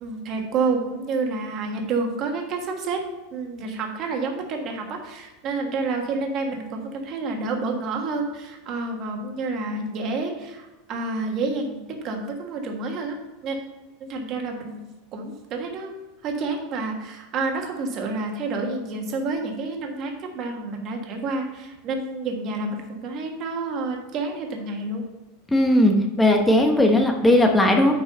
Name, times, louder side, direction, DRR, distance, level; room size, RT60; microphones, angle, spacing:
voice 1, 0.0-3.0 3.3-13.2 13.4-13.6 14.0-15.9 16.2-25.0, right 3 dB, 35° right, 2 dB, 1.4 m, -29 dB
voice 2, 25.5-27.9, left 1 dB, 5° left, 3 dB, 0.9 m, -18 dB
9.5 x 4.6 x 5.3 m, 1.1 s
supercardioid pair, 165°, 0 cm